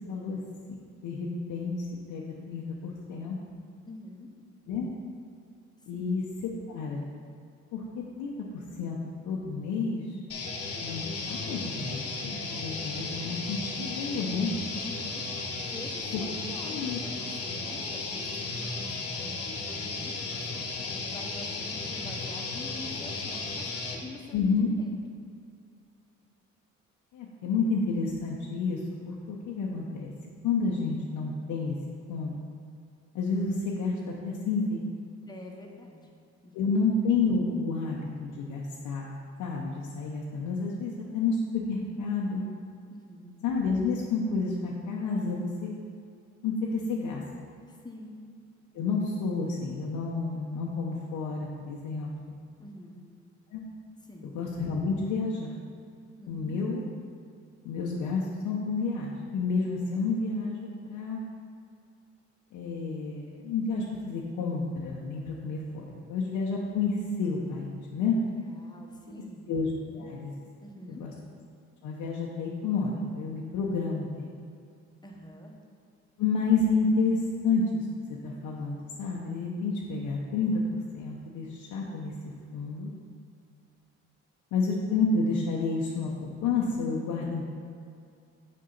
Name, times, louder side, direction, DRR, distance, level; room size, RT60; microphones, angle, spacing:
voice 1, 0.1-0.4 0.7-1.7 2.1-3.4 4.7-4.9 5.9-6.2 6.7-7.1 7.7-9.0 9.2-10.2 10.8-14.5 16.1-16.2 16.6-17.0 24.3-24.7 27.1-28.8 29.0-30.1 30.4-31.8 32.1-32.4 33.1-34.8 36.5-42.4 43.4-45.7 46.4-47.2 48.7-52.4 53.5-53.6 54.3-55.6 56.3-56.8 57.6-61.2 62.5-68.2 69.5-69.7 69.9-70.3 71.0-71.1 71.8-74.3 76.2-77.9 78.2-82.1 82.5-82.9 84.5-87.5, left 4 dB, 90° left, -3 dB, 0.8 m, -30 dB
voice 2, 3.9-4.3 5.8-6.1 14.8-25.0 35.3-36.1 36.4-36.7 42.9-43.3 47.7-48.1 52.6-53.0 54.0-54.3 56.2-56.7 68.0-69.4 69.8-70.1 70.6-71.1 75.0-75.5, left 1 dB, 15° left, 0 dB, 1.0 m, -46 dB
sound 1, 10.3-24.0, left 3 dB, 50° left, 1.1 m, -35 dB
6.6 x 5.4 x 3.9 m, 2.4 s
cardioid pair, 90°, 30 cm